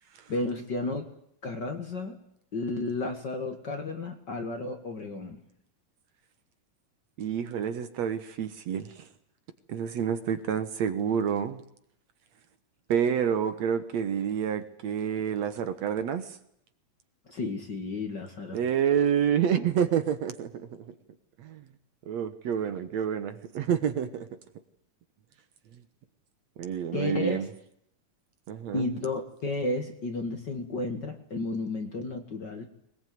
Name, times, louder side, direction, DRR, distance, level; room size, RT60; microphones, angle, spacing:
voice 1, 0.3-1.1 1.4-2.2 2.5-5.4 17.3-18.6 26.9-27.5 28.7-32.7, left 2 dB, 40° left, 6 dB, 2.1 m, -32 dB
voice 2, 7.2-9.1 9.7-11.6 12.9-16.4 18.5-20.7 21.4-21.6 22.1-24.3 26.6-27.5 28.5-28.9, right 8 dB, 65° right, 11 dB, 2.3 m, -28 dB
21.5 x 20.5 x 9.4 m, 0.70 s
omnidirectional pair, 3.7 m